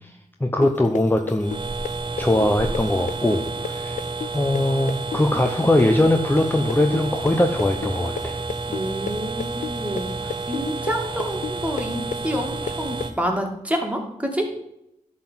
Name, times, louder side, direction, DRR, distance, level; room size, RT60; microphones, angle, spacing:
voice 1, 0.4-1.6 2.2-4.0 4.3-8.4, left 1 dB, 15° left, 4 dB, 0.9 m, -21 dB
sound 1, 0.6-8.2 8.5-13.1, left 8 dB, 65° left, 0.4 m, -32 dB
sound 2, 1.4-13.1, right 3 dB, 35° right, 1.2 m, -30 dB
voice 2, 8.7-14.5, equal, 10° right, 2 dB, 2.4 m, -28 dB
11.0 x 4.0 x 7.7 m, 0.82 s
cardioid pair, 55°, 14 cm